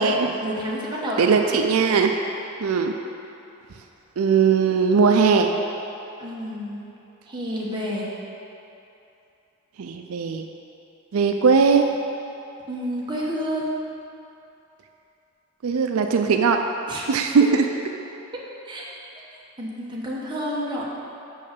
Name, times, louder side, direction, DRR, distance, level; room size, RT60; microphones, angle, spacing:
voice 1, 0.0-1.6 6.2-6.8 7.3-8.1 12.7-13.7 16.9-17.0 18.3-18.9 19.6-20.9, equal, 20° right, -5 dB, 1.2 m, -29 dB
voice 2, 1.2-2.1 2.6-2.9 4.2-5.5 9.8-10.5 11.1-11.9 15.6-16.6 17.1-17.6, right 5 dB, 85° right, 4 dB, 0.4 m, -19 dB
5.7 x 5.4 x 6.6 m, 2.8 s
head